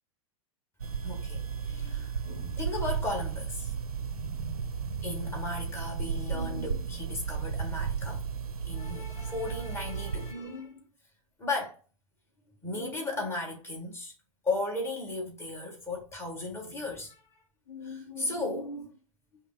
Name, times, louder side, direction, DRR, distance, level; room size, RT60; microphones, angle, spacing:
sound 1, 0.8-10.3, right 6 dB, 85° right, 0.4 m, -34 dB
voice 1, 1.0-8.3 8.6-10.8 11.4-11.8 12.6-14.1 14.4-17.2 17.7-19.0, left 2 dB, 15° left, 1.5 m, -36 dB
5.1 x 2.0 x 3.9 m
figure-of-eight pair, 95°, 18 cm